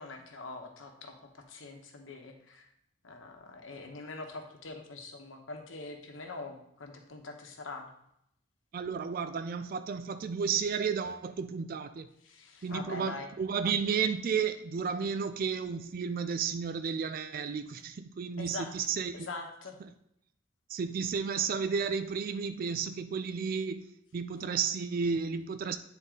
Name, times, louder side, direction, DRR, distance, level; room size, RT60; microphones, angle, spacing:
voice 1, 0.0-2.7 3.0-7.9 12.2-13.3 18.4-18.7 19.1-19.8, left 3 dB, 90° left, 3 dB, 1.0 m, -43 dB
voice 2, 8.7-12.1 12.6-19.3 20.7-25.8, right 6 dB, 45° right, 10 dB, 0.3 m, -32 dB
9.0 x 3.9 x 3.7 m, 0.75 s
head